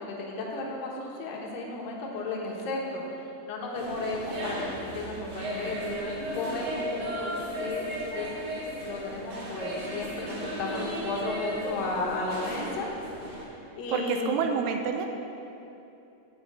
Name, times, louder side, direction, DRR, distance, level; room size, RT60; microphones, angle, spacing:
voice 1, 0.0-6.1 6.3-7.9 8.1-8.3 8.8-12.9 13.3-14.4, left 3 dB, 80° left, -2 dB, 2.9 m, -34 dB
sound 1, 3.8-13.4, equal, 55° right, 2.2 m, -35 dB
voice 2, 13.9-15.1, right 6 dB, 80° right, 5 dB, 1.8 m, -28 dB
8.6 x 5.9 x 7.4 m, 2.8 s
omnidirectional pair, 4.0 m